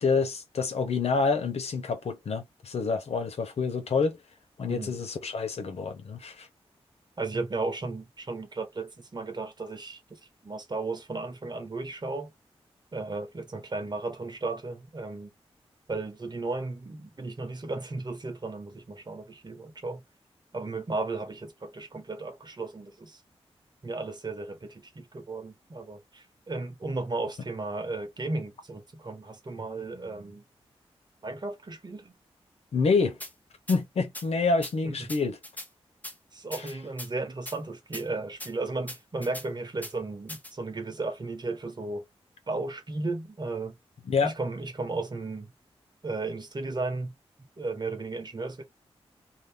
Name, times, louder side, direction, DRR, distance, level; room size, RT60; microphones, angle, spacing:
voice 1, 0.0-4.2 4.6-6.5 32.7-33.2 33.7-35.4 36.6-36.7 44.1-44.3, left 4 dB, 80° left, 1.0 m, -27 dB
voice 2, 7.2-10.0 10.4-12.3 12.9-15.3 15.9-20.0 20.5-23.2 23.8-30.4 31.2-32.1 34.8-35.1 36.3-42.0 42.5-43.8 44.2-45.5 46.0-47.1 47.6-48.6, right 3 dB, 45° right, 1.2 m, -35 dB
sound 1, 33.2-33.3 33.7-33.8 34.1-34.3 34.6-34.7 35.1-35.7 36.0-36.1 36.5-37.1 37.5-37.6 37.9-38.0 38.4-38.5 38.9-39.5 39.8-39.9 40.3-40.5, left 1 dB, 15° left, 1.0 m, -40 dB
2.9 x 2.4 x 3.5 m
wide cardioid pair, 80°, 11 cm